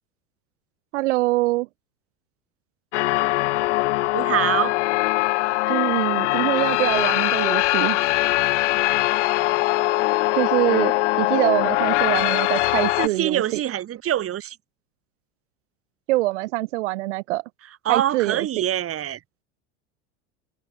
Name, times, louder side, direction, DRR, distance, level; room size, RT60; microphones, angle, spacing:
voice 1, 0.9-1.7 5.7-8.0 10.4-10.9 11.2-13.6 16.1-17.4 17.9-18.5, right 19 dB, 75° right, 1.9 m, -24 dB
sound 1, 2.9-13.1, left 20 dB, 75° left, 6.4 m, -22 dB
voice 2, 4.1-4.8 13.0-14.6 17.9-19.2, right 11 dB, 40° right, 5.6 m, -24 dB
supercardioid pair, 105°, 36 cm